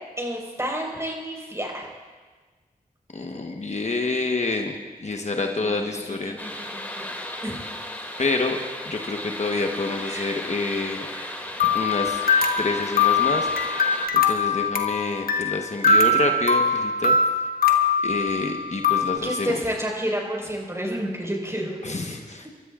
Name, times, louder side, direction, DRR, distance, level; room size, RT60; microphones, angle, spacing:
voice 1, 0.2-1.8 5.4-7.1 7.4-7.6 9.9-10.4 11.1-11.3 12.2-12.6 19.2-22.2, equal, 20° right, -1 dB, 4.8 m, -31 dB
voice 2, 3.1-4.7 5.0-6.4 8.2-8.6 8.9-11.1 11.7-12.2 12.6-13.7 14.1-17.2 18.0-19.6 21.8-22.5, left 3 dB, 45° left, 3 dB, 1.1 m, -28 dB
sound 1, 6.4-14.1, left 1 dB, 10° left, 2.4 m, -35 dB
sound 2, 11.6-19.2, left 4 dB, 70° left, 1.3 m, -22 dB
26.5 x 13.5 x 2.5 m, 1.4 s
cardioid pair, 45°, 16 cm